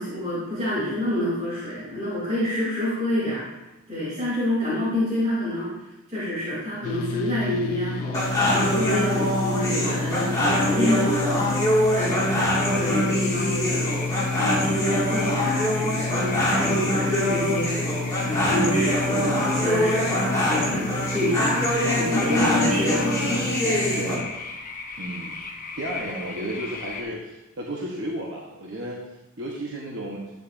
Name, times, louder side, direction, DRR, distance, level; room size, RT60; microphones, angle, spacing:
voice 1, 0.0-13.9 14.4-24.1, left 1 dB, 30° right, -9 dB, 3.3 m, -28 dB
sound 1, 6.8-24.3, left 3 dB, 90° left, 0.5 m, -31 dB
sound 2, 8.1-24.2, equal, 15° left, 2.2 m, -24 dB
sound 3, 11.7-27.0, left 4 dB, 40° left, 0.9 m, -37 dB
voice 2, 25.0-25.4 25.8-29.0 29.4-30.3, right 1 dB, 55° right, -3 dB, 1.1 m, -33 dB
11.5 x 9.2 x 2.7 m, 0.97 s
head